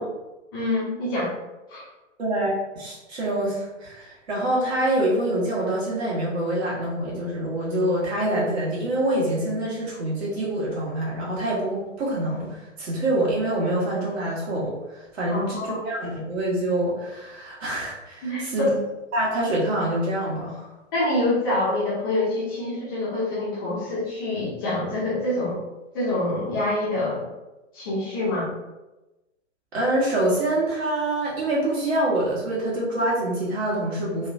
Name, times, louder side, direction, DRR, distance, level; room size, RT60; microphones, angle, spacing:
voice 1, 0.5-1.3 1.7-1.9 15.3-15.8 18.2-18.7 20.9-25.6 25.9-27.3 27.7-28.5, left 1 dB, 20° left, -7 dB, 0.4 m, -26 dB
voice 2, 2.2-18.7 19.1-20.7 29.7-34.3, right 1 dB, 55° right, -5 dB, 1.3 m, -26 dB
2.9 x 2.2 x 2.5 m, 1.0 s
figure-of-eight pair, 115°, 37 cm